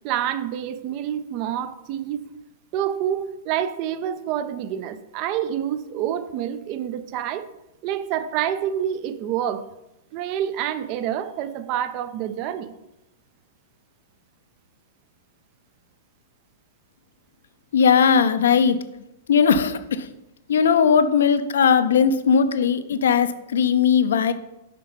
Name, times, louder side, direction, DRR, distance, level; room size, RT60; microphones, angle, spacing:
voice 1, 0.0-2.2 2.7-7.5 7.8-9.7 10.1-12.7, right 10 dB, 45° right, 12 dB, 0.6 m, -27 dB
voice 2, 17.7-18.8 19.3-20.1 20.5-24.3, left 6 dB, 70° left, 11 dB, 0.5 m, -18 dB
5.4 x 5.3 x 5.6 m, 0.91 s
hypercardioid pair, 105°, 0 cm